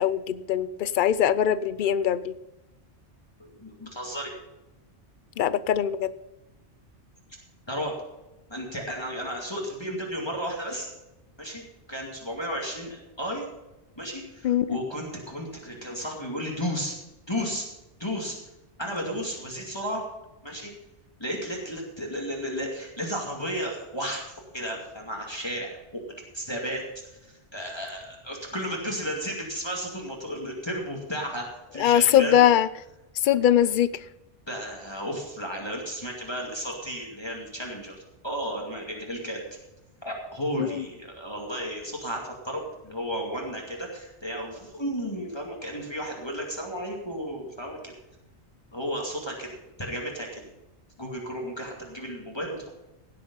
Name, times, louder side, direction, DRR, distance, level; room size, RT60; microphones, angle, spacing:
voice 1, 0.0-2.3 5.4-6.1 14.4-14.8 31.8-32.7 33.2-34.0 40.6-40.7, left 10 dB, 55° left, 16 dB, 0.7 m, -22 dB
voice 2, 3.4-4.3 7.7-8.0 8.5-10.9 11.4-13.5 14.0-17.0 17.3-17.7 18.0-18.4 18.8-20.0 20.4-20.7 21.2-26.0 26.3-26.8 27.2-32.4 34.5-38.0 38.2-39.4 40.0-47.9 48.7-50.5 51.0-52.7, equal, 20° left, -1 dB, 2.4 m, -33 dB
17.0 x 7.6 x 5.4 m, 0.99 s
omnidirectional pair, 1.2 m